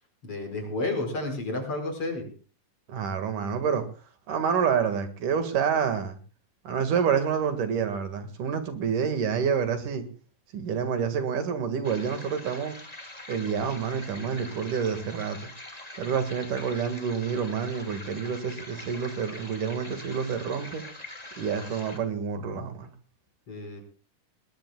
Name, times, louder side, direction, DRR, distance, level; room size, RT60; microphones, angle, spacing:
voice 1, 0.2-2.3 23.5-23.8, left 2 dB, 45° left, 6.1 m, -31 dB
voice 2, 2.9-3.8 4.3-6.2 6.6-10.1 10.5-12.7 13.3-15.5 16.0-20.9 21.4-22.9, right 7 dB, 70° right, 3.3 m, -28 dB
sound 1, 11.8-22.0, left 2 dB, 15° left, 2.3 m, -44 dB
21.0 x 20.5 x 2.3 m
omnidirectional pair, 3.8 m